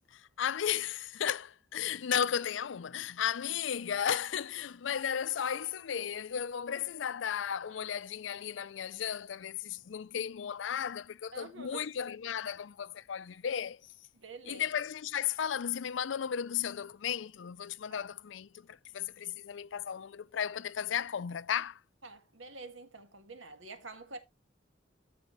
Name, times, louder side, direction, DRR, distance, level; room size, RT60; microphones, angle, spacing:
voice 1, 0.1-13.8 14.5-21.8, left 8 dB, 70° left, 0.4 m, -35 dB
voice 2, 11.3-11.8 14.1-14.7 17.9-18.1 22.0-24.2, right 3 dB, 85° right, 1.7 m, -47 dB
13.5 x 5.1 x 3.1 m
head